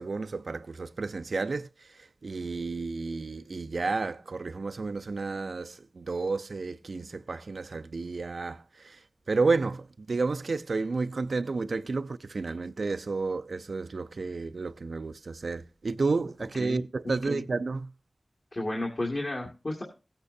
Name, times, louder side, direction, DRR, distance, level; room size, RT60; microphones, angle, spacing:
voice 1, 0.0-17.9, right 3 dB, 85° right, 0.4 m, -31 dB
voice 2, 16.6-17.4 18.5-19.8, left 1 dB, 60° left, 2.1 m, -33 dB
17.0 x 8.7 x 2.7 m
wide cardioid pair, 55°, 0 cm